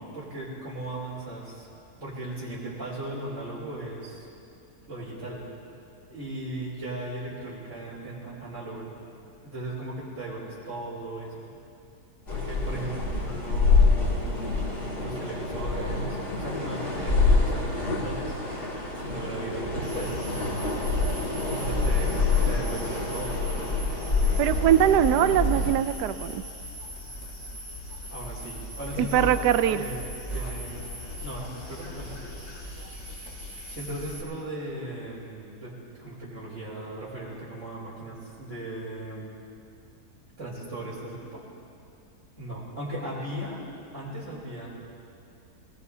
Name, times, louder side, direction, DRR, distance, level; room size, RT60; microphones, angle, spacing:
voice 1, 0.0-1.7 2.0-4.3 4.9-5.4 6.1-8.9 9.4-11.4 12.3-14.6 15.0-18.3 18.9-20.1 21.6-23.7 28.1-29.4 29.7-30.0 30.3-30.9 31.2-32.2 33.7-35.7 36.0-39.3 40.4-41.4 42.4-43.6 43.9-44.7, right 1 dB, 45° right, -11 dB, 3.8 m, -37 dB
sound 1, 12.3-25.7, left 3 dB, 75° left, 3.5 m, -26 dB
sound 2, 19.8-34.2, equal, 40° left, 2.4 m, -39 dB
voice 2, 24.4-26.4 29.0-29.9, right 10 dB, 80° right, 12 dB, 1.2 m, -22 dB
25.5 x 19.5 x 2.8 m, 2.5 s
omnidirectional pair, 1.8 m